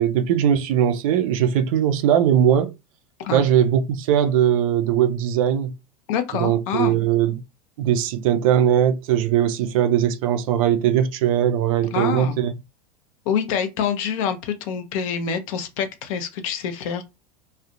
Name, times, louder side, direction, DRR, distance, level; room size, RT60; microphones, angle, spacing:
voice 1, 0.0-2.7 3.3-5.7 6.4-7.4 7.8-12.5, right 10 dB, 55° right, 0.4 m, -20 dB
voice 2, 6.1-6.9 11.9-12.4 13.3-17.0, left 7 dB, 55° left, 0.6 m, -26 dB
2.4 x 2.0 x 2.6 m
figure-of-eight pair, 80°, 21 cm